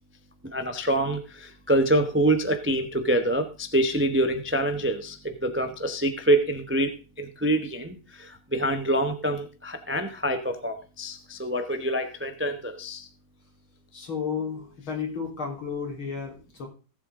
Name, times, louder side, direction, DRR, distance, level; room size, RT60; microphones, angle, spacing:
voice 1, 0.4-13.1, right 1 dB, 15° right, 7 dB, 0.4 m, -26 dB
voice 2, 13.9-16.7, left 6 dB, 70° left, 0 dB, 4.5 m, -32 dB
18.0 x 7.5 x 3.8 m, 0.33 s
omnidirectional pair, 2.4 m